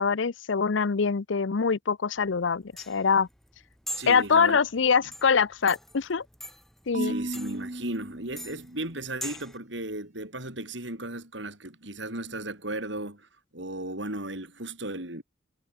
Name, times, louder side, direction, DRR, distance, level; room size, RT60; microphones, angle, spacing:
voice 1, 0.0-3.3 4.1-6.2 6.9-7.2, left 5 dB, 70° left, 0.6 m, -24 dB
sound 1, 2.2-9.6, left 1 dB, ahead, 7.9 m, -43 dB
voice 2, 3.9-4.6 6.9-13.3 13.5-15.2, right 2 dB, 65° right, 7.8 m, -35 dB
Marimba xylophone / Wood, 6.9-9.1, right 1 dB, 35° right, 1.3 m, -35 dB
head